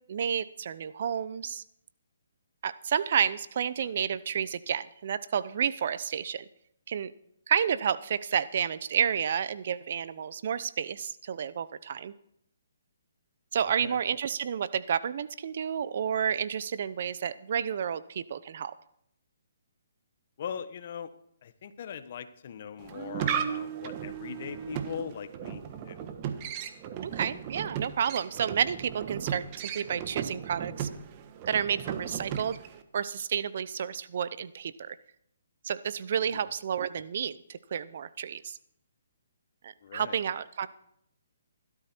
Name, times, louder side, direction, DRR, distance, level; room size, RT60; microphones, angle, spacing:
voice 1, 0.1-1.6 2.6-6.5 6.9-7.1 7.5-12.1 13.5-18.7 27.0-30.9 31.5-32.6 32.9-35.0 35.6-38.6 39.6-40.7, right 8 dB, 55° right, 15 dB, 0.8 m, -30 dB
voice 2, 13.6-14.0 20.4-21.1 21.4-26.1 39.8-40.2, left 8 dB, 50° left, 12 dB, 1.3 m, -41 dB
sound 1, 22.8-32.8, right 8 dB, 35° right, 1.4 m, -36 dB
16.5 x 13.0 x 4.5 m, 0.72 s
hypercardioid pair, 145°, 0 cm